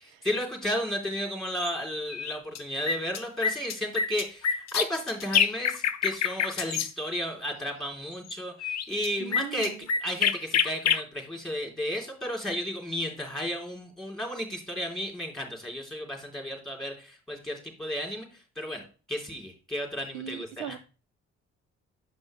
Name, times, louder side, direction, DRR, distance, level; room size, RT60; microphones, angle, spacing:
voice 1, 0.2-20.8, equal, ahead, 3.5 m, -33 dB
sound 1, 1.6-1.7 2.1-2.6 2.9-6.9 8.3-8.4 8.6-11.0, left 7 dB, 50° left, 0.7 m, -26 dB
voice 2, 9.2-9.9 20.1-20.8, right 10 dB, 85° right, 0.5 m, -39 dB
8.3 x 5.4 x 3.2 m
hypercardioid pair, 50°, 34 cm